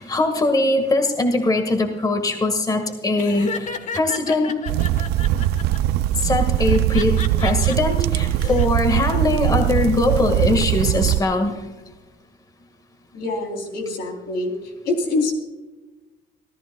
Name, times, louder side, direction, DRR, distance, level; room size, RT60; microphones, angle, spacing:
voice 1, 0.0-4.5 6.2-11.6, left 2 dB, 25° left, 5 dB, 1.7 m, -21 dB
Laughter, 3.2-5.8 6.6-7.8 8.2-8.7, left 5 dB, 45° left, 1.3 m, -33 dB
Another Fire, 4.7-11.2, right 13 dB, 85° right, 0.4 m, -21 dB
voice 2, 13.1-15.3, left 2 dB, 80° left, 4 dB, 3.5 m, -25 dB
26.0 x 14.0 x 2.3 m, 1.2 s
cardioid pair, 110°, 16 cm